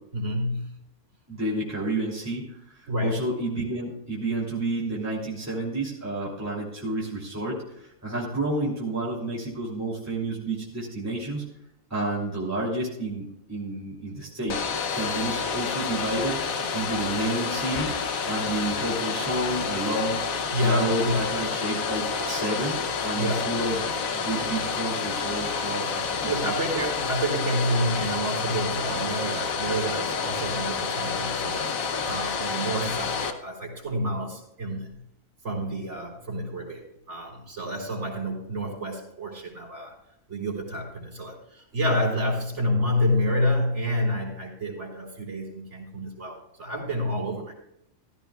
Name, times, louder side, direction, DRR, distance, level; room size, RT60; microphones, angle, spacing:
voice 1, 0.1-0.7 2.9-3.2 20.5-21.2 23.2-23.4 26.2-31.7 32.0-34.9 35.4-39.9 40.3-47.5, equal, 60° right, -1 dB, 3.9 m, -28 dB
voice 2, 1.3-11.4 11.9-14.6 14.9-16.4 16.7-17.9 18.2-20.3 20.6-26.5, right 2 dB, 10° right, -6 dB, 2.9 m, -30 dB
Domestic sounds home sounds, 14.5-33.3, left 5 dB, 90° left, 1.4 m, -29 dB
15.5 x 14.0 x 2.4 m, 0.80 s
omnidirectional pair, 1.4 m